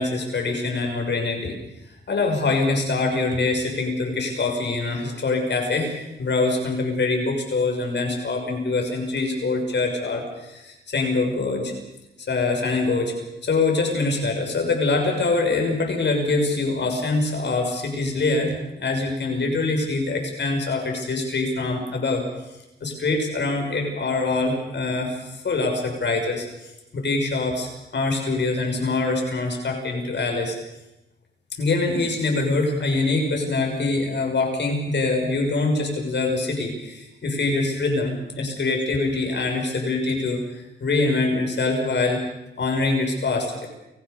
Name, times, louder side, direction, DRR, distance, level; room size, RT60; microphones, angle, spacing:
voice 1, 0.0-1.5 2.1-11.7 12.3-13.2 13.4-22.3 22.8-30.6 31.5-42.2 42.6-43.7, left 3 dB, 55° left, 2 dB, 6.7 m, -24 dB
29.5 x 15.0 x 7.0 m, 0.95 s
cardioid pair, 80°, 21 cm